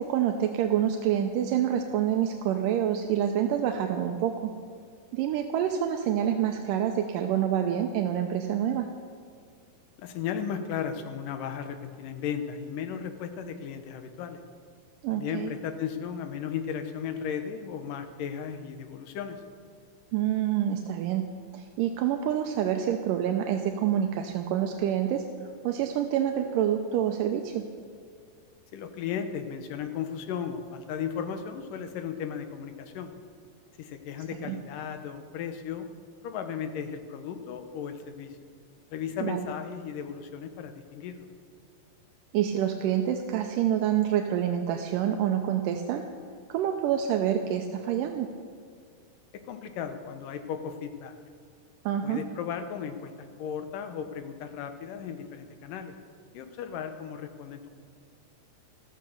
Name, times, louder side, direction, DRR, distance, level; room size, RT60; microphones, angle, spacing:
voice 1, 0.0-4.5 5.1-8.9 15.0-15.5 20.1-21.3 21.5-25.2 25.6-27.6 34.5-34.6 39.2-39.5 42.3-46.0 46.5-48.3 51.9-52.2, right 10 dB, 80° right, 5 dB, 2.3 m, -27 dB
voice 2, 10.0-14.4 15.1-19.4 28.7-33.1 33.8-35.9 36.2-38.4 38.9-41.3 49.5-51.2 52.0-55.9 56.3-57.7, left 7 dB, 80° left, 8 dB, 2.6 m, -35 dB
14.5 x 13.0 x 6.6 m, 2.2 s
omnidirectional pair, 4.0 m